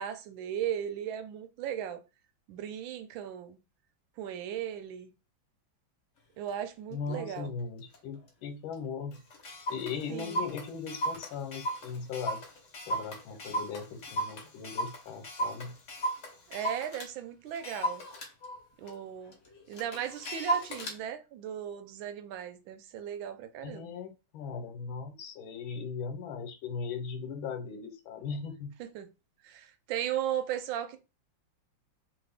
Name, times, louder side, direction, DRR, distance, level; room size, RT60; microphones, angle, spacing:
voice 1, 0.0-2.0 2.5-3.6 4.2-5.1 6.4-7.5 10.1-10.4 16.5-18.0 18.8-19.4 19.7-23.9 28.8-29.1 29.4-31.0, right 10 dB, 80° right, 1.3 m, -36 dB
Clock, 6.5-6.6 7.1-7.4 7.9-8.0 8.3-8.4 8.7-8.8 9.1-17.1 17.5-21.0, right 1 dB, 45° left, 1.0 m, -36 dB
voice 2, 6.9-9.2 9.7-12.4 12.9-15.7 23.6-28.7, left 5 dB, 90° left, 1.5 m, -38 dB
3.2 x 2.4 x 3.4 m
omnidirectional pair, 2.1 m